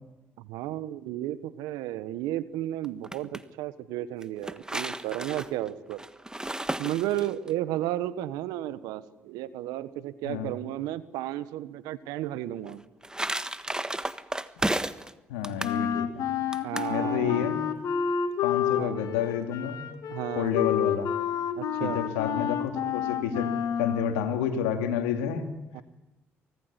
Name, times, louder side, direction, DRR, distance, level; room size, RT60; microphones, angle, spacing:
voice 1, 0.4-6.0 6.8-12.8 16.6-17.6 18.8-19.0 20.1-20.6 21.6-22.0 25.7-25.8, right 13 dB, 75° right, 14 dB, 1.3 m, -33 dB
sound 1, 2.8-3.4 4.2-7.5 12.7-15.1 15.4-15.8 16.5-16.9, right 1 dB, 10° right, 1.4 m, -33 dB
voice 2, 15.3-16.2 16.9-17.6 18.4-19.8 20.4-21.1 21.8-23.5 23.8-25.6, left 8 dB, 85° left, 6 dB, 2.5 m, -29 dB
Wind instrument woodwind instrument, 15.6-24.2, left 8 dB, 65° left, 2.7 m, -29 dB
25.0 x 18.5 x 9.8 m, 1.0 s
hypercardioid pair, 50°, 7 cm